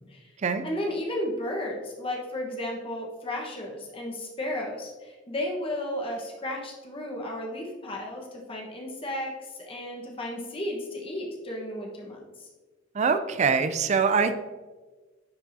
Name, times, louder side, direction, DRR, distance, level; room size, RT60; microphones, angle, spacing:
voice 1, 0.6-12.5, left 1 dB, 30° left, -1 dB, 1.2 m, -34 dB
voice 2, 12.9-14.3, right 5 dB, 40° right, 10 dB, 0.4 m, -23 dB
10.0 x 4.6 x 2.7 m, 1.3 s
head